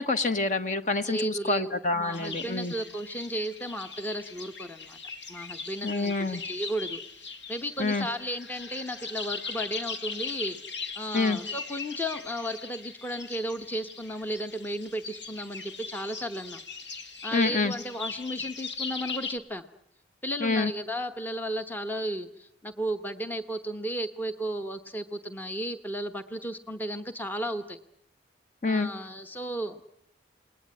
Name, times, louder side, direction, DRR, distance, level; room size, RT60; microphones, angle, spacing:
voice 1, 0.0-2.7 5.8-6.4 7.8-8.1 11.1-11.4 17.3-17.7 20.4-20.7 28.6-28.9, left 3 dB, 40° left, 9 dB, 1.2 m, -27 dB
voice 2, 1.0-5.0 5.3-16.6 17.2-19.6 20.2-27.8 28.7-29.8, equal, 10° left, 8 dB, 1.0 m, -34 dB
sound 1, 2.1-19.4, left 5 dB, 75° left, 2.4 m, -40 dB
29.5 x 20.5 x 9.6 m, 0.76 s
head